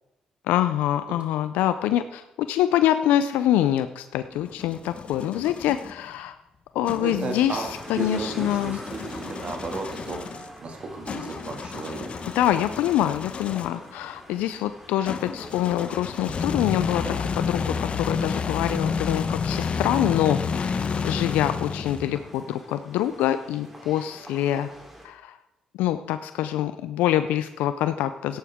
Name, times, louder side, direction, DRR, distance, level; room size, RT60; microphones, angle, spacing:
voice 1, 0.5-6.4 6.7-8.8 12.4-17.0 17.4-20.4 21.0-24.7 25.0-25.4 25.7-28.4, left 12 dB, 85° left, 11 dB, 0.5 m, -25 dB
sound 1, 4.1-5.9 6.9-13.9 15.0-22.3, left 5 dB, 50° left, 0.9 m, -31 dB
voice 2, 6.9-10.2 10.6-12.1 17.0-17.3, right 3 dB, 50° right, 3 dB, 2.2 m, -34 dB
sound 2, 7.1-25.1, equal, 5° right, 3.4 m, -46 dB
13.5 x 10.5 x 3.6 m, 0.93 s
supercardioid pair, 65°, 3 cm